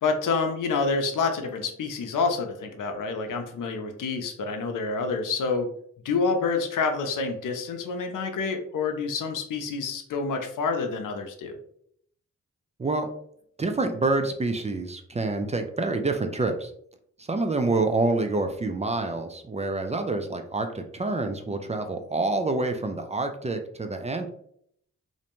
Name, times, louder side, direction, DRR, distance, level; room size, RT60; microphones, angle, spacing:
voice 1, 0.0-5.7 6.0-11.6, left 4 dB, 80° left, 5 dB, 0.5 m, -28 dB
voice 2, 13.6-16.7 17.2-24.3, right 3 dB, 20° right, 6 dB, 0.3 m, -27 dB
2.6 x 2.1 x 2.9 m, 0.66 s
cardioid pair, 60°, 31 cm